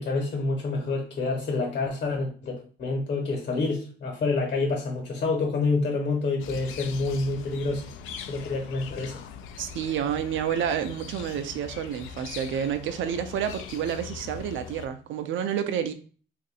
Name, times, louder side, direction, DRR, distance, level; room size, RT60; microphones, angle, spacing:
voice 1, 0.0-7.8 8.3-9.2, left 3 dB, 55° left, 1.1 m, -28 dB
sound 1, 6.4-14.9, left 7 dB, 90° left, 0.4 m, -41 dB
voice 2, 9.6-15.9, right 8 dB, 75° right, 0.5 m, -29 dB
2.7 x 2.5 x 4.0 m
cardioid pair, 90°, 20 cm